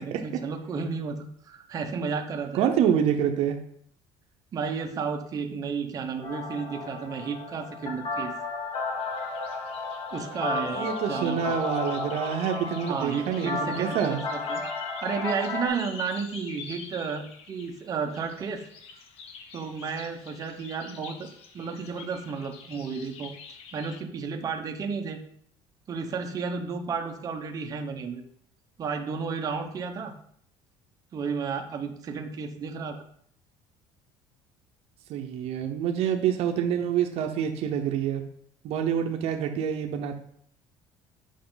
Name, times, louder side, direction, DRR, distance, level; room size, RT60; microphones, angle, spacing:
voice 1, 0.0-2.7 4.5-8.4 10.1-11.6 12.9-14.6 15.0-18.6 19.5-21.3 21.5-23.3 23.7-25.2 25.9-28.2 28.8-30.1 31.1-33.0, right 5 dB, 30° right, 3 dB, 0.9 m, -32 dB
voice 2, 2.5-3.6 10.7-14.2 35.1-38.2 38.6-40.2, right 9 dB, 65° right, 4 dB, 0.8 m, -27 dB
sound 1, 6.2-15.7, left 3 dB, 45° left, 1.7 m, -33 dB
sound 2, 9.0-24.0, left 6 dB, 60° left, 1.0 m, -47 dB
8.4 x 5.6 x 3.9 m, 0.65 s
cardioid pair, 150°, 11 cm